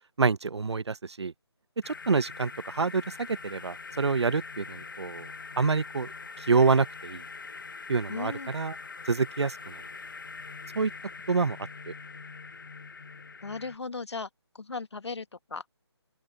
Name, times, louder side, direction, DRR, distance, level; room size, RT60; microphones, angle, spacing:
voice 1, 0.2-1.3 1.9-5.3 5.6-6.1 6.4-7.2 7.9-8.7 9.1-9.8 10.7-10.9 11.3-11.6 11.9-12.0, right 4 dB, 75° right, 0.8 m, -27 dB
sound 1, 1.8-13.8, left 4 dB, 45° left, 1.3 m, -43 dB
voice 2, 8.1-8.5 13.4-14.3 14.5-15.6, left 4 dB, 75° left, 1.7 m, -37 dB
hypercardioid pair, 175°, 14 cm